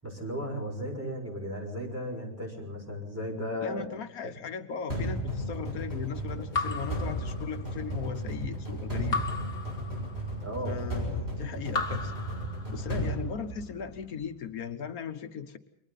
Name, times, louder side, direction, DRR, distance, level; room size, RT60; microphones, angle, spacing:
voice 1, 0.0-3.9 10.4-10.8, equal, 10° right, 0 dB, 6.1 m, -35 dB
voice 2, 3.6-9.2 10.7-12.2 12.7-15.6, left 6 dB, 85° left, 8 dB, 1.6 m, -38 dB
sound 1, 4.9-14.1, right 1 dB, 45° right, 7.4 m, -34 dB
Raindrop / Drip, 6.5-7.9 9.1-10.5 11.7-13.1, left 4 dB, 45° left, 2.1 m, -35 dB
29.0 x 24.0 x 4.1 m, 0.74 s
omnidirectional pair, 1.5 m